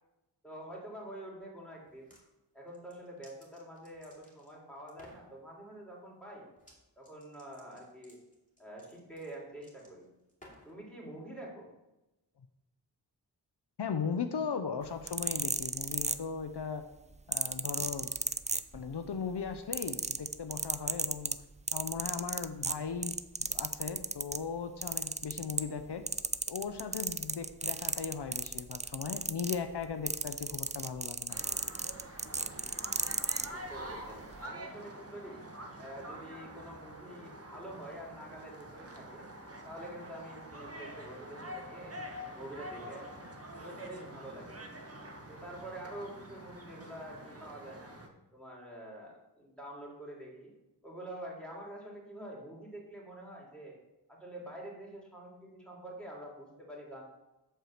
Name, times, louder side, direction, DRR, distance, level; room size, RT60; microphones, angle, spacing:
voice 1, 0.4-2.1 2.5-6.5 7.0-8.2 8.6-10.1 10.6-11.7 33.4-35.4 35.8-39.2 39.6-41.9 42.3-43.1 43.6-44.9 45.3-47.9 48.3-50.5 50.8-53.8 54.1-57.0, right 1 dB, ahead, -3 dB, 3.1 m, -47 dB
sound 1, 1.9-2.2 2.7-4.5 4.9-5.3 6.6-6.8 7.0-10.8, left 1 dB, 20° left, 2.8 m, -59 dB
voice 2, 13.8-16.8 17.3-18.1 18.7-21.4 21.7-26.0 26.5-31.4, left 6 dB, 75° left, 8 dB, 0.7 m, -38 dB
sound 2, 14.9-16.6 17.3-19.1 19.4-24.4 24.8-25.8 26.1-33.5 34.2-34.4, right 4 dB, 20° right, 0.3 m, -34 dB
sound 3, 31.3-48.1, right 1 dB, 35° right, 1.3 m, -46 dB
8.0 x 4.6 x 6.5 m, 0.99 s
wide cardioid pair, 55°, 41 cm